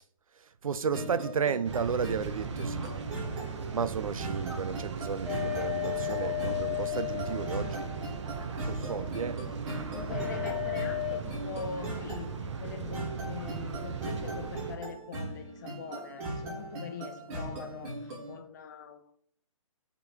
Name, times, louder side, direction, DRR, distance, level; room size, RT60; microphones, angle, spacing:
voice 1, 0.4-2.9 3.7-7.9 8.6-9.5 9.8-9.9, right 6 dB, 80° right, 0.7 m, -33 dB
sound 1, 0.9-18.4, right 1 dB, 25° right, 3.3 m, -40 dB
sound 2, 1.6-14.8, right 5 dB, 55° right, 1.3 m, -38 dB
voice 2, 2.6-3.0 9.7-19.2, left 6 dB, 35° left, 0.9 m, -43 dB
sound 3, 5.2-8.2 10.1-11.2, left 13 dB, 5° right, 0.5 m, -34 dB
8.3 x 3.8 x 6.1 m
hypercardioid pair, 165°, 17 cm